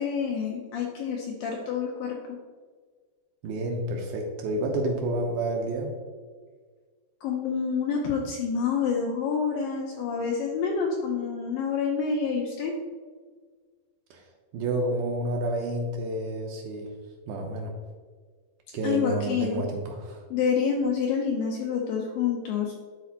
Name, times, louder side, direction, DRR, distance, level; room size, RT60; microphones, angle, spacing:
voice 1, 0.0-2.2 7.2-12.7 18.8-19.6 20.3-22.7, left 6 dB, 85° left, -1 dB, 2.1 m, -28 dB
voice 2, 3.4-5.9 14.1-14.2 14.5-16.9 17.3-17.7 18.7-20.2, right 1 dB, 75° right, 1 dB, 2.3 m, -29 dB
11.5 x 4.2 x 2.8 m, 1.5 s
omnidirectional pair, 4.7 m